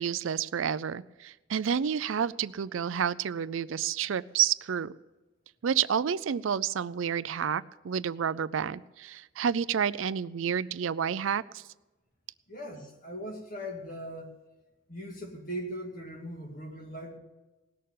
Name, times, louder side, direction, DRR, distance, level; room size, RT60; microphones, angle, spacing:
voice 1, 0.0-4.9 5.6-11.6, right 8 dB, 70° right, 16 dB, 0.4 m, -30 dB
voice 2, 12.5-14.3 14.9-17.2, equal, 45° left, 2 dB, 2.3 m, -39 dB
18.5 x 6.6 x 9.2 m, 1.1 s
head